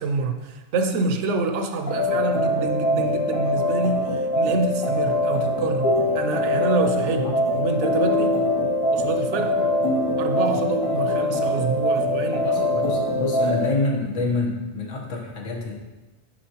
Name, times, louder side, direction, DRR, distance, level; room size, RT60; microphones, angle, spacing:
voice 1, 0.0-8.4 8.8-9.6 10.2-12.5, right 3 dB, 75° right, 6 dB, 0.9 m, -27 dB
sound 1, 1.9-13.7, left 1 dB, 20° left, 0.8 m, -23 dB
voice 2, 12.4-15.7, left 3 dB, 85° left, -1 dB, 1.4 m, -27 dB
6.9 x 5.0 x 2.9 m, 1.1 s
omnidirectional pair, 1.2 m